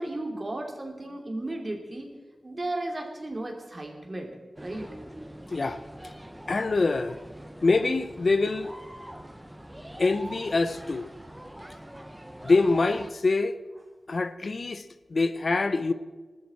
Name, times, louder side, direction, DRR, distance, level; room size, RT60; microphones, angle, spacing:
voice 1, 0.0-2.1 2.4-4.3 4.6-4.9, right 1 dB, 35° right, 2.7 m, -34 dB
sound 1, 4.6-13.1, right 1 dB, 10° right, 0.8 m, -44 dB
voice 2, 6.5-7.2 7.6-8.7 10.0-11.1 12.4-13.6 14.1-15.9, left 3 dB, 55° left, 0.6 m, -25 dB
20.0 x 13.0 x 4.2 m
wide cardioid pair, 80°, 0 cm